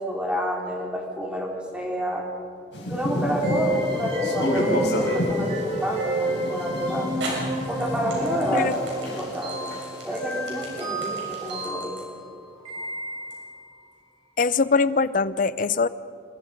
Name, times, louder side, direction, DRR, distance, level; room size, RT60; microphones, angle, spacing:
voice 1, 0.0-2.3 2.8-7.1 7.7-9.7 10.0-12.0, equal, 5° right, -2 dB, 4.0 m, -29 dB
sound 1, 2.7-9.5 9.7-11.6, equal, 70° left, 5.4 m, -29 dB
sound 2, 3.1-3.7 4.5-4.6 6.4-6.5 7.2-13.4, right 2 dB, 90° right, 6.5 m, -38 dB
sound 3, 3.4-13.6, equal, 30° right, 3.7 m, -30 dB
voice 2, 14.4-15.9, left 4 dB, 45° left, 16 dB, 0.6 m, -22 dB
27.0 x 21.5 x 5.3 m, 2.6 s
head